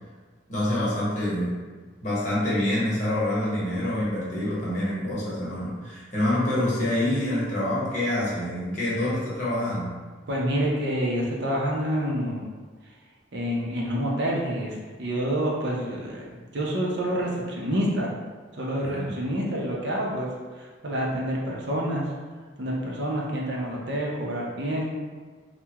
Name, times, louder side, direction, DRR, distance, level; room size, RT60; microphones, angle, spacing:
voice 1, 0.5-1.5 2.0-9.9 18.8-19.2, left 1 dB, 40° left, -8 dB, 0.9 m, -26 dB
voice 2, 10.3-12.5 13.3-18.1 18.5-20.3 20.6-22.0 22.6-24.9, equal, 60° right, -3 dB, 0.6 m, -28 dB
3.4 x 2.1 x 2.8 m, 1.5 s
head